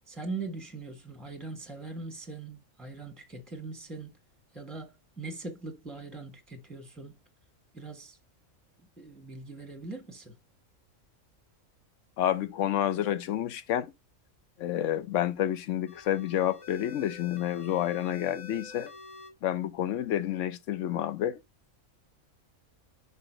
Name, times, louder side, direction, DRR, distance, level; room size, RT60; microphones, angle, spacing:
voice 1, 0.1-4.1 4.5-7.1 7.7-8.2 9.0-10.3, right 3 dB, ahead, 1.2 m, -41 dB
voice 2, 12.2-13.9 14.6-18.9 19.4-21.4, left 11 dB, 70° left, 1.0 m, -29 dB
sound 1, 15.9-19.3, left 4 dB, 25° left, 1.3 m, -47 dB
5.8 x 5.4 x 4.5 m
omnidirectional pair, 1.4 m